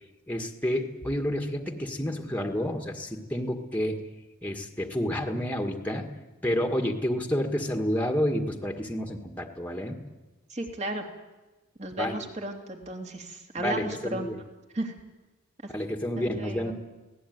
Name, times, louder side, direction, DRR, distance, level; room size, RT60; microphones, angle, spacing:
voice 1, 0.3-4.0 4.4-6.1 6.4-10.0 12.0-12.2 13.6-14.4 15.7-16.7, equal, 10° left, 4 dB, 1.7 m, -29 dB
voice 2, 10.5-11.0 11.8-14.3 14.7-14.9 15.6-15.7 16.2-16.7, right 2 dB, 35° right, 2 dB, 3.0 m, -34 dB
26.5 x 18.0 x 9.4 m, 1.2 s
head